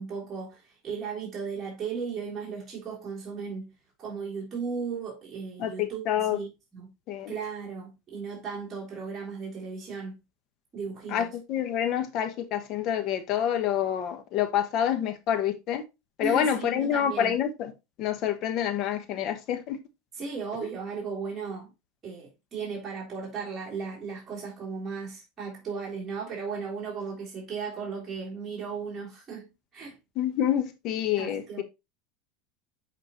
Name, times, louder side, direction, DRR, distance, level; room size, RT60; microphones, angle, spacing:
voice 1, 0.0-3.7 4.0-6.0 6.3-6.9 7.3-10.2 10.7-11.3 16.2-17.3 20.1-21.7 22.0-29.5 29.7-30.0 31.2-31.6, right 5 dB, 25° right, 3.4 m, -36 dB
voice 2, 5.6-6.4 7.1-7.3 11.1-15.8 16.2-17.7 18.0-19.8 30.2-31.6, left 10 dB, 50° left, 1.2 m, -27 dB
8.1 x 4.4 x 3.1 m
supercardioid pair, 130°, 0 cm